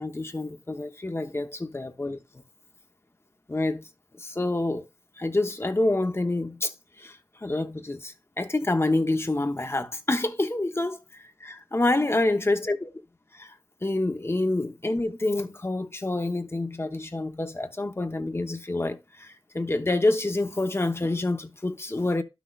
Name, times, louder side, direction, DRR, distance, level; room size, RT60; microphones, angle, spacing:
voice 1, 0.0-2.2 3.5-3.8 4.2-4.9 5.2-12.8 13.3-13.6 13.8-22.2, left 2 dB, 30° left, 0.9 m, -27 dB
12.0 x 6.1 x 2.3 m
wide cardioid pair, 70°, 8 cm